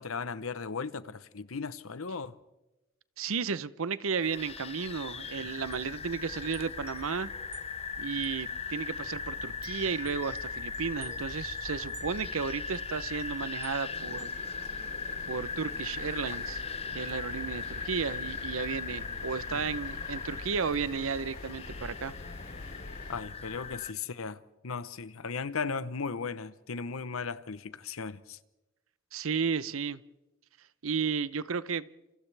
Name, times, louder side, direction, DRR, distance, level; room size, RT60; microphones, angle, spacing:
voice 1, 0.0-2.4 19.5-19.6 23.1-28.4, left 5 dB, 75° left, 0.8 m, -36 dB
voice 2, 3.2-7.3 8.0-14.3 15.3-16.6 16.9-22.1 29.1-30.0 30.8-31.9, right 5 dB, 70° right, 0.7 m, -33 dB
sound 1, 4.2-23.9, left 4 dB, 30° left, 0.7 m, -38 dB
Wind chime, 5.1-9.2 9.5-15.4, right 4 dB, 25° right, 2.6 m, -56 dB
sound 2, 13.8-23.2, left 2 dB, 55° left, 4.6 m, -49 dB
29.5 x 28.0 x 3.4 m
head